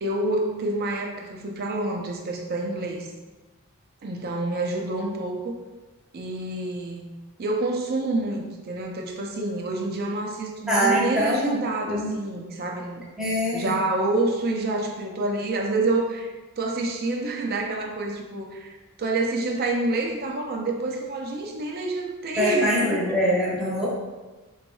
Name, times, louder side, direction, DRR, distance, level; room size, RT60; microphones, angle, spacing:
voice 1, 0.0-3.1 4.0-5.6 6.1-7.1 7.4-13.0 13.5-23.0, right 2 dB, 45° right, 1 dB, 0.5 m, -28 dB
voice 2, 10.7-11.6 11.9-12.1 13.2-13.8 22.4-23.9, equal, 5° right, -8 dB, 0.9 m, -23 dB
4.0 x 3.0 x 2.2 m, 1.2 s
head